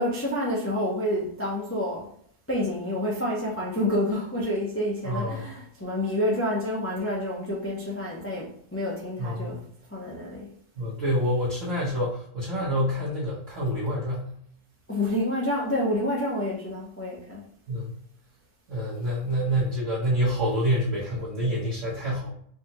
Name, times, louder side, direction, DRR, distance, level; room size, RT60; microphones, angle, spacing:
voice 1, 0.0-2.1 2.5-9.6 9.9-10.5 14.9-17.4, left 1 dB, 15° left, -4 dB, 0.4 m, -28 dB
voice 2, 5.0-5.4 9.2-9.6 10.8-14.3 17.7-17.9 18.7-22.3, equal, 55° right, -9 dB, 1.5 m, -27 dB
4.9 x 2.4 x 2.9 m, 0.65 s
omnidirectional pair, 1.6 m